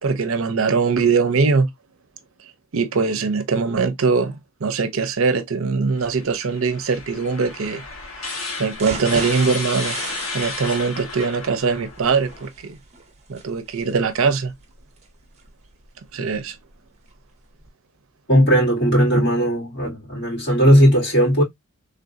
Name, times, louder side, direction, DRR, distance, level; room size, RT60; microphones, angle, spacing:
voice 1, 0.0-1.7 2.7-4.3 4.6-7.8 8.6-10.0 10.3-12.8 13.3-14.5 16.1-16.6, right 4 dB, 70° right, 0.6 m, -21 dB
sound 1, 6.0-12.5, left 3 dB, 70° left, 1.2 m, -33 dB
sound 2, 8.8-16.7 17.1-17.2 17.6-17.7, right 3 dB, 30° right, 0.8 m, -37 dB
voice 2, 18.3-21.4, equal, 55° left, 2.1 m, -17 dB
3.4 x 2.5 x 2.4 m
head